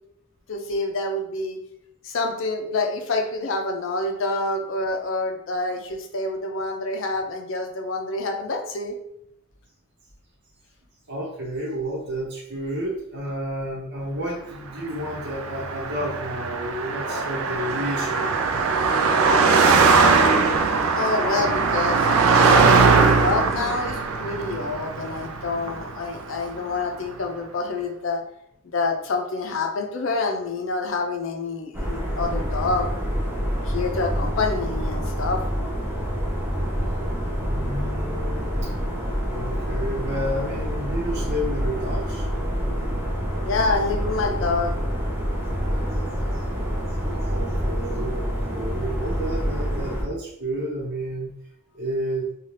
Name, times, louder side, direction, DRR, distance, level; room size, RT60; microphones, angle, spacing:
voice 1, 0.5-1.6 2.0-9.0 20.9-22.1 22.8-28.2 28.6-32.9 33.7-35.4 43.4-44.7, left 3 dB, 65° left, 4 dB, 0.5 m, -27 dB
voice 2, 11.1-19.2 37.3-38.7 39.3-42.5 47.2-51.3 51.7-52.3, equal, 55° right, -3 dB, 1.0 m, -31 dB
Car passing by, 15.0-26.5, right 4 dB, 80° right, 0.4 m, -20 dB
sound 1, 31.7-50.0, equal, 10° right, 0.6 m, -27 dB
2.7 x 2.3 x 3.2 m, 0.75 s
head